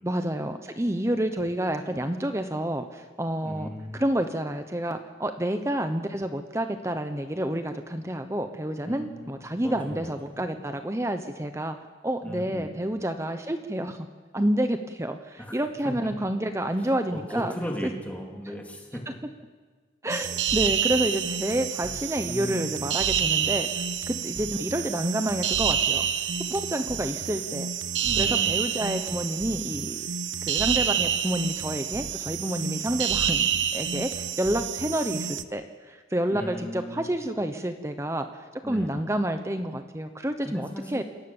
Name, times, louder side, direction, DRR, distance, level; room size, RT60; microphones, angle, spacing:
voice 1, 0.0-11.8 12.0-14.0 14.3-17.5 20.0-23.7 24.1-26.1 26.5-27.7 28.2-30.0 30.5-41.0, right 1 dB, 15° right, 7 dB, 0.9 m, -29 dB
voice 2, 3.4-4.0 8.8-10.4 12.2-12.7 15.4-15.6 16.0-16.1 17.1-19.0 22.2-22.7 28.0-28.5 36.3-37.1 38.6-39.0 40.4-41.0, equal, 10° left, 0 dB, 3.1 m, -37 dB
sound 1, 20.1-35.4, right 8 dB, 85° right, 0.9 m, -28 dB
27.0 x 17.5 x 7.3 m, 1.4 s
head